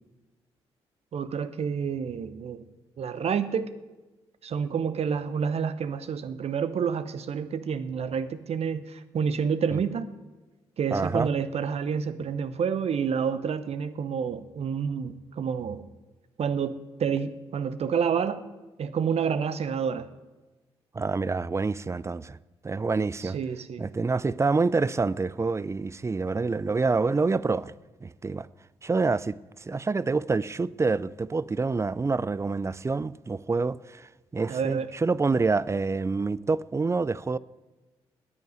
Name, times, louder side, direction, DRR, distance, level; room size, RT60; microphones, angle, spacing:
voice 1, 1.1-2.6 3.0-3.7 4.4-10.1 10.8-15.9 16.4-18.4 18.8-20.1 23.2-23.9 34.5-34.9, right 6 dB, 55° right, 0.9 m, -29 dB
voice 2, 10.9-11.3 20.9-22.4 22.6-23.4 23.8-27.7 28.0-28.5 28.8-37.4, right 4 dB, 20° right, 0.5 m, -27 dB
11.0 x 9.3 x 9.6 m
hypercardioid pair, 40°, 13 cm